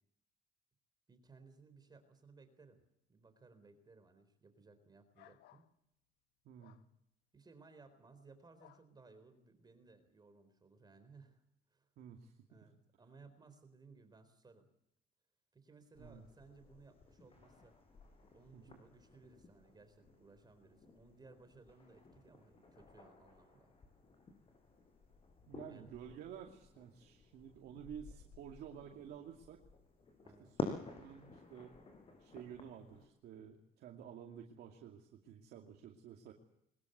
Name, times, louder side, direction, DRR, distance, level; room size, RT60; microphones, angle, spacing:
voice 1, 1.1-2.8 3.1-5.6 7.3-11.4 11.7-11.9 12.5-14.7 15.5-17.8 18.3-23.7 25.7-25.9 30.2-30.5, right 4 dB, 25° right, 9 dB, 4.0 m, -61 dB
sound 1, 5.1-5.7 6.6-6.9 8.6-8.9, left 14 dB, 80° left, 1.4 m, -62 dB
voice 2, 6.4-6.8 12.0-12.7 16.0-16.2 18.5-18.8 25.4-29.6 30.4-31.7 32.2-36.3, right 8 dB, 70° right, 1 dB, 2.5 m, -52 dB
sound 2, 15.9-33.1, left 3 dB, 35° left, 6.3 m, -51 dB
22.0 x 21.0 x 8.1 m, 0.77 s
cardioid pair, 110°, 17 cm